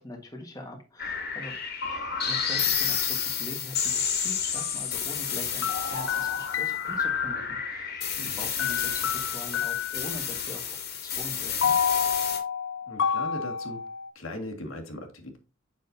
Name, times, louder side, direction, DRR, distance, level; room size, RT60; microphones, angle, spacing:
voice 1, 0.0-1.5 1.8-11.8, left 1 dB, 15° left, 2 dB, 1.4 m, -42 dB
sound 1, 1.0-12.4, left 7 dB, 50° left, 2.0 m, -30 dB
sound 2, 4.5-4.7 5.6-7.6 8.6-10.2 11.6-14.1, left 8 dB, 65° left, 0.5 m, -29 dB
voice 2, 8.2-8.5 12.9-13.8 14.2-15.4, left 1 dB, 80° left, 2 dB, 1.9 m, -39 dB
7.6 x 6.2 x 2.7 m, 0.32 s
head